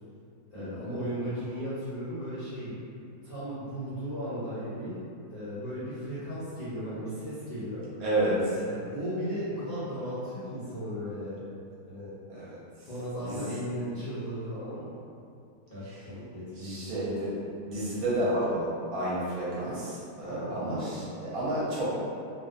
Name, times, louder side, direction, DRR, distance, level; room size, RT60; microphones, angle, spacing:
voice 1, 0.5-2.7 3.2-5.0 5.3-7.8 8.5-11.4 11.9-12.1 12.9-14.9 15.7-17.0 20.3-21.1, equal, 60° left, -13 dB, 0.6 m, -36 dB
voice 2, 8.0-8.6 12.3-12.6 13.2-13.7 15.9-16.0 16.6-17.3 17.6-21.9, right 1 dB, 70° right, -8 dB, 1.0 m, -31 dB
2.7 x 2.1 x 2.4 m, 2.5 s
omnidirectional pair, 1.7 m